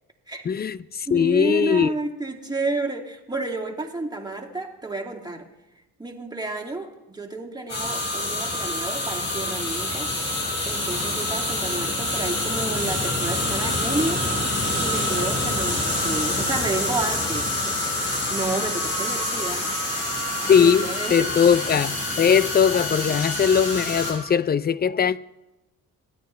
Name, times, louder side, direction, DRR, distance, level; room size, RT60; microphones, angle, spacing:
voice 1, 0.4-1.9 20.5-25.2, left 7 dB, 30° left, 0.5 m, -20 dB
voice 2, 1.1-5.5 6.0-14.2 14.8-19.7 20.4-21.3, right 3 dB, 10° right, 2.4 m, -31 dB
sound 1, 7.7-24.1, left 1 dB, 50° left, 5.5 m, -26 dB
26.5 x 9.5 x 3.2 m
supercardioid pair, 65°, 35 cm